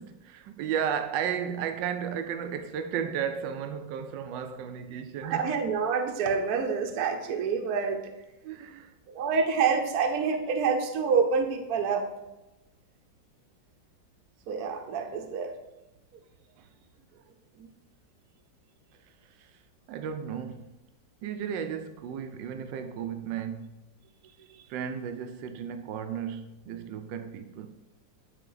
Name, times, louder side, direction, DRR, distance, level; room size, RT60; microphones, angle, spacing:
voice 1, 0.0-5.6 8.4-8.9 16.6-16.7 19.4-19.5 19.9-20.8 21.2-23.9 24.7-27.8, right 8 dB, 80° right, 1.3 m, -34 dB
voice 2, 5.2-8.1 9.1-12.0 14.5-15.6 17.6-17.7 24.5-24.6, right 5 dB, 65° right, 1.1 m, -27 dB
9.9 x 4.1 x 3.9 m
omnidirectional pair, 2.0 m